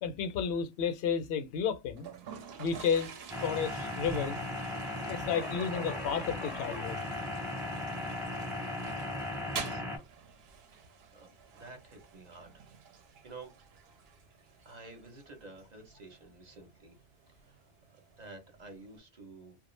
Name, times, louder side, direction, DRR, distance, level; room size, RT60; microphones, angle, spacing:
voice 1, 0.0-2.1 2.6-3.1 3.4-4.4 5.1-7.0, left 7 dB, 70° left, 0.8 m, -32 dB
Toilet flush, 2.0-19.0, right 5 dB, 75° right, 0.8 m, -48 dB
sound 1, 3.3-10.0, left 2 dB, ahead, 0.6 m, -37 dB
voice 2, 9.3-10.1 10.7-10.8 11.1-12.6 13.2-13.5 14.6-16.9 17.4-17.6 18.2-19.6, right 3 dB, 45° right, 0.8 m, -51 dB
2.4 x 2.1 x 3.0 m
omnidirectional pair, 1.1 m